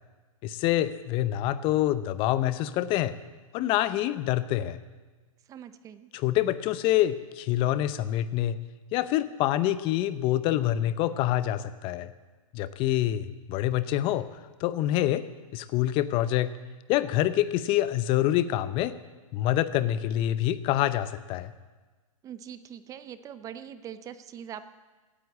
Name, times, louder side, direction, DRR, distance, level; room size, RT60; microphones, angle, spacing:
voice 1, 0.4-3.1 3.5-4.8 6.1-8.6 8.9-12.1 12.5-14.3 14.6-15.2 15.5-16.5 16.9-18.9 19.3-21.5, left 13 dB, 30° left, 14 dB, 0.7 m, -26 dB
voice 2, 5.5-6.1 22.2-24.6, right 9 dB, 20° right, 13 dB, 0.7 m, -42 dB
15.5 x 10.0 x 8.5 m, 1.3 s
hypercardioid pair, 140°, 18 cm